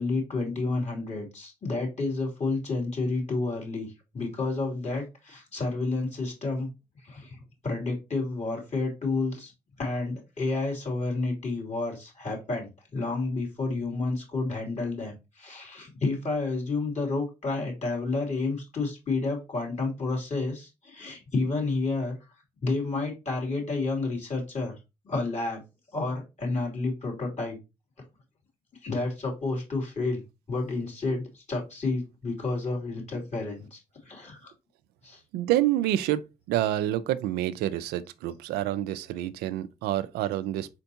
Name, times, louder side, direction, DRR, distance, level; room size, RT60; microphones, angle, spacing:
voice 1, 0.0-6.7 7.0-7.4 7.6-9.5 9.8-22.2 22.6-24.8 25.0-25.6 25.9-27.6 28.8-30.2 30.5-33.8 34.0-34.5 35.0-35.2, left 3 dB, 45° left, 2.9 m, -30 dB
voice 2, 35.3-36.2 36.5-40.7, right 13 dB, 85° right, 0.4 m, -27 dB
4.4 x 4.2 x 2.8 m
supercardioid pair, 50°, 16 cm